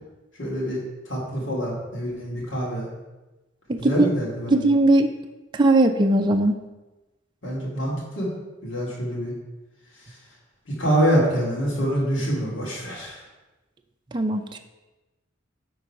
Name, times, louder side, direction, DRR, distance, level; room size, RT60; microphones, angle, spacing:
voice 1, 0.4-2.9 3.8-4.6 7.4-8.3 8.6-9.3 9.9-10.2 10.7-13.2, equal, 70° left, -5 dB, 2.5 m, -26 dB
voice 2, 4.5-5.1 5.5-6.6 14.1-14.6, right 2 dB, 25° right, 4 dB, 0.5 m, -19 dB
9.9 x 3.9 x 5.7 m, 1.1 s
head